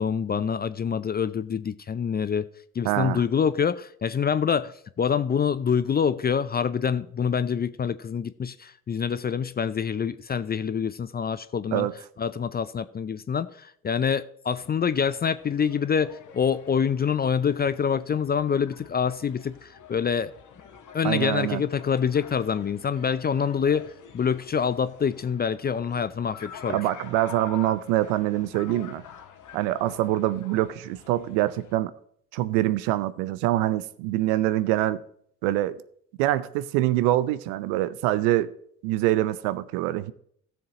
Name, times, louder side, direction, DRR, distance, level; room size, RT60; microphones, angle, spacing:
voice 1, 0.0-2.5 2.7-11.9 12.2-20.3 20.9-26.8, left 7 dB, 25° left, 0.5 m, -26 dB
voice 2, 2.8-3.2 11.7-11.9 21.0-21.6 26.7-29.0 29.5-31.9 32.3-35.0 35.4-35.8 36.2-38.5 38.8-40.1, right 15 dB, 75° right, 0.6 m, -25 dB
sound 1, 14.6-31.8, left 7 dB, 50° left, 1.5 m, -47 dB
16.5 x 7.2 x 2.9 m
hypercardioid pair, 50°, 39 cm